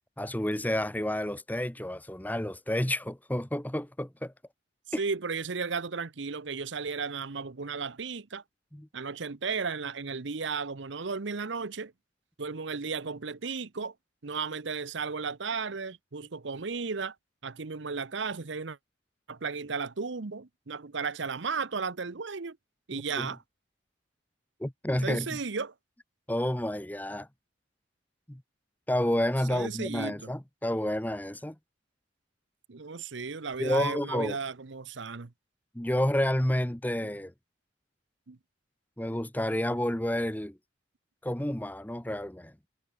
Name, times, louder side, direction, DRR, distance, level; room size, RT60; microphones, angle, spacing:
voice 1, 0.2-4.3 4.9-5.0 8.7-8.9 22.9-23.3 24.6-25.4 26.3-27.3 28.3-28.4 28.9-31.6 33.6-34.4 35.7-37.3 39.0-40.6 41.2-42.7, left 1 dB, 10° left, 0.9 m, -30 dB
voice 2, 5.0-8.4 8.9-11.9 12.4-13.9 14.2-17.1 17.4-18.8 19.3-22.6 22.9-23.4 25.0-25.7 29.5-30.3 32.7-35.3 38.3-38.4, right 5 dB, 70° right, 0.9 m, -34 dB
head